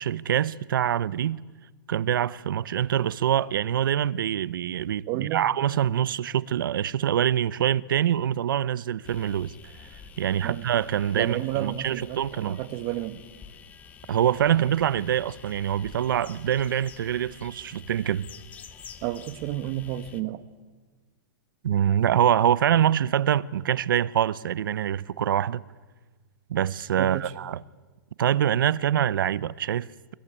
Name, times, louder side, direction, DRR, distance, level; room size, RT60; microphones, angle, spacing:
voice 1, 0.0-1.4 1.9-12.6 14.1-18.3 21.6-25.6 26.5-27.6 28.2-29.9, right 10 dB, 80° right, 0.7 m, -25 dB
voice 2, 5.1-5.5 10.4-10.7 11.1-13.3 19.0-20.4 27.0-27.3, right 14 dB, 30° right, 1.1 m, -31 dB
sound 1, 9.0-20.2, left 7 dB, 15° left, 0.9 m, -48 dB
23.0 x 22.0 x 9.8 m
hypercardioid pair, 165°, 11 cm